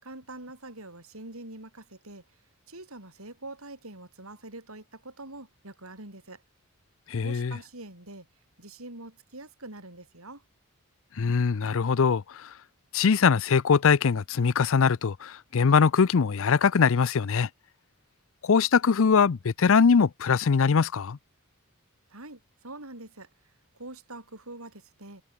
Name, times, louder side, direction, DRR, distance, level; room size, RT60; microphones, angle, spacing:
voice 1, 0.0-2.2 2.7-6.4 7.2-8.3 8.6-10.4 22.1-25.2, right 2 dB, 75° right, 7.8 m, -44 dB
voice 2, 7.1-7.5 11.2-12.5 12.9-17.5 18.4-21.2, left 5 dB, 65° left, 0.5 m, -22 dB
head